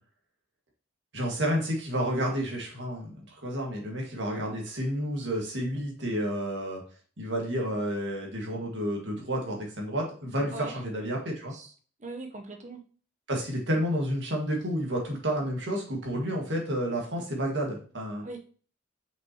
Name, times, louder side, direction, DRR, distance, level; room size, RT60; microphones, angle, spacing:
voice 1, 1.1-6.8 7.2-11.5 13.3-18.2, equal, 60° right, 0 dB, 1.9 m, -30 dB
voice 2, 12.0-12.8 18.2-18.4, right 2 dB, 35° right, 4 dB, 0.9 m, -40 dB
6.0 x 5.5 x 3.0 m, 0.42 s
head